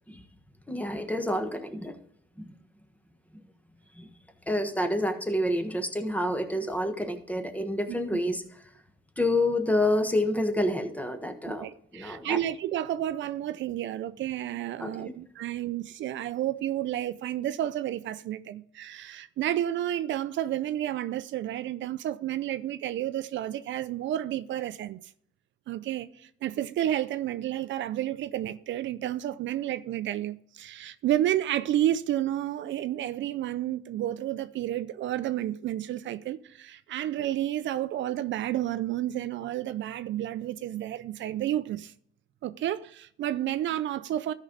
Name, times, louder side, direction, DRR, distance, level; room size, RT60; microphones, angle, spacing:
voice 1, 0.7-1.9 2.4-2.5 4.0-4.1 4.5-8.4 9.2-12.4 14.8-15.1, left 1 dB, 5° left, 1.3 m, -28 dB
voice 2, 11.6-25.0 25.7-41.9 42.4-44.3, right 12 dB, 70° right, 0.5 m, -31 dB
13.5 x 5.4 x 3.8 m
cardioid pair, 90°, 20 cm